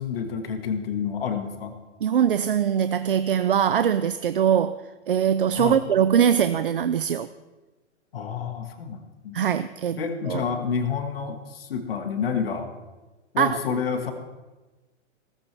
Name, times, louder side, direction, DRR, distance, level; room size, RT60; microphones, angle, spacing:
voice 1, 0.0-1.7 5.5-5.8 8.1-9.4 10.0-12.7 13.3-14.1, left 6 dB, 50° left, 5 dB, 1.7 m, -29 dB
voice 2, 2.0-4.8 5.1-7.3 9.3-10.4 13.4-13.6, right 8 dB, 50° right, 13 dB, 0.4 m, -22 dB
17.0 x 14.5 x 3.4 m, 1.2 s
hypercardioid pair, 180°, 36 cm